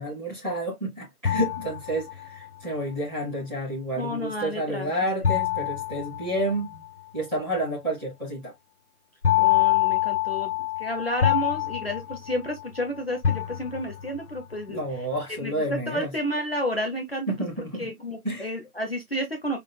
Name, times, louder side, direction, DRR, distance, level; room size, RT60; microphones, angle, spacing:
voice 1, 0.0-6.8 7.1-8.5 14.7-16.1 17.3-17.9 18.2-18.5, right 1 dB, 5° right, 1.8 m, -30 dB
sound 1, 1.2-2.5 5.2-6.9 9.2-12.8 13.2-14.2, left 12 dB, 80° left, 0.8 m, -25 dB
voice 2, 4.0-4.9 9.4-10.5 10.8-14.8 15.4-17.3 17.8-19.6, equal, 40° left, 0.8 m, -31 dB
5.8 x 3.2 x 2.3 m
figure-of-eight pair, 165°, 45 cm